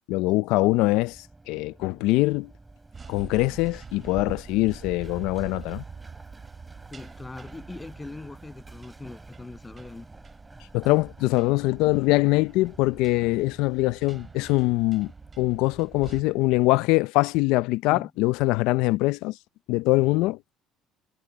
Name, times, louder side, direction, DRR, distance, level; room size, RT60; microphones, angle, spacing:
voice 1, 0.1-1.2 1.5-2.5 3.1-5.8 10.7-15.1 15.4-19.3 19.7-20.4, left 20 dB, 85° left, 0.5 m, -23 dB
Run, 0.7-16.8, right 2 dB, 15° right, 7.0 m, -51 dB
sound 1, 2.9-16.2, right 5 dB, 30° right, 7.6 m, -45 dB
voice 2, 6.9-10.1 17.9-18.1, left 3 dB, 15° left, 7.7 m, -41 dB
supercardioid pair, 90°, 0 cm